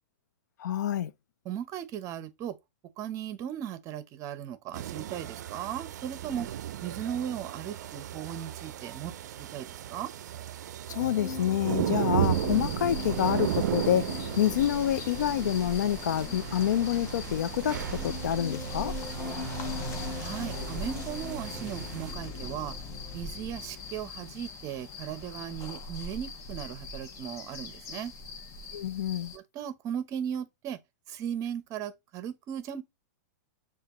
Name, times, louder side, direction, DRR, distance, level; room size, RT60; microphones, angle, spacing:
voice 1, 0.6-1.1 10.9-18.9 28.7-29.3, left 10 dB, 80° left, 0.5 m, -28 dB
voice 2, 1.4-2.5 3.0-6.5 6.8-10.1 20.2-22.7 23.1-28.1 29.3-30.8 31.1-32.8, right 9 dB, 35° right, 0.8 m, -37 dB
sound 1, 4.7-22.1, right 11 dB, 75° right, 0.4 m, -35 dB
sound 2, 11.0-23.7, left 3 dB, 10° left, 1.3 m, -41 dB
sound 3, 12.2-29.4, left 3 dB, 35° left, 0.9 m, -41 dB
6.6 x 2.5 x 3.0 m
hypercardioid pair, 125°, 9 cm